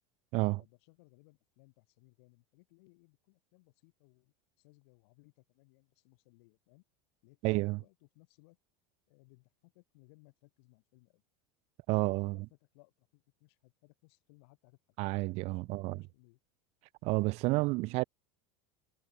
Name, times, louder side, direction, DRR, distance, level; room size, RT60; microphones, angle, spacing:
voice 1, 0.4-6.8 7.2-8.6 9.1-11.2 12.2-16.4 17.4-17.7, left 27 dB, 70° left, 7.2 m, -65 dB
voice 2, 7.4-7.8 11.9-12.4 15.0-16.0 17.0-18.0, right 23 dB, 50° right, 0.4 m, -30 dB
supercardioid pair, 125°, 14 cm